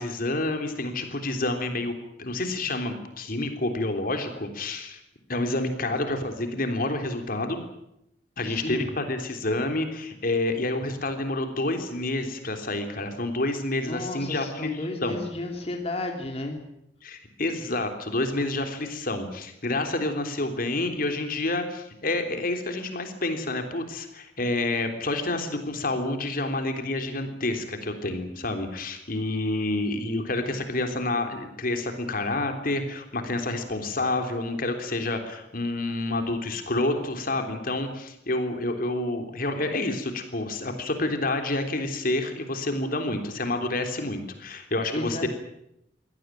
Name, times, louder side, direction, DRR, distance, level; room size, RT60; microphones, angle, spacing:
voice 1, 0.0-5.0 5.3-7.6 8.4-15.2 17.0-45.3, left 2 dB, 55° left, 6 dB, 3.5 m, -28 dB
voice 2, 8.5-8.9 13.9-16.6 44.9-45.3, left 1 dB, 35° left, 3 dB, 3.2 m, -32 dB
24.5 x 17.0 x 9.2 m, 0.81 s
head